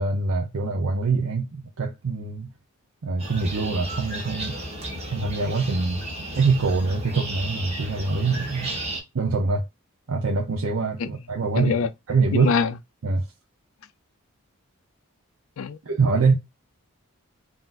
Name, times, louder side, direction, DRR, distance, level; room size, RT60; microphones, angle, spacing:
voice 1, 0.0-2.5 3.0-4.6 5.1-6.0 6.3-8.8 9.1-9.6 10.1-12.6 13.0-13.3 15.9-16.4, right 4 dB, 70° right, 0.7 m, -24 dB
sound 1, 3.2-9.0, right 1 dB, 30° right, 1.4 m, -34 dB
voice 2, 11.5-11.9 12.3-12.7 15.6-15.8, left 5 dB, 65° left, 0.4 m, -24 dB
5.6 x 2.8 x 2.4 m
head